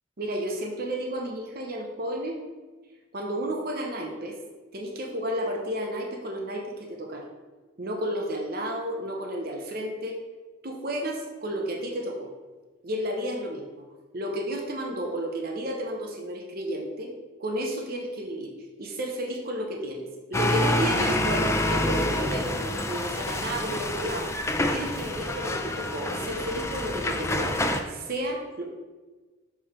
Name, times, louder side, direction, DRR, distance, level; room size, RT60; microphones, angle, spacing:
voice 1, 0.2-2.4 3.1-4.4 4.7-7.3 7.8-10.2 10.6-12.3 12.8-13.8 14.1-17.1 17.4-18.5 18.8-24.3 24.6-28.6, equal, 50° right, 1 dB, 0.8 m, -32 dB
sound 1, 20.3-27.8, left 1 dB, 15° left, 0.4 m, -27 dB
6.9 x 3.5 x 4.3 m, 1.3 s
head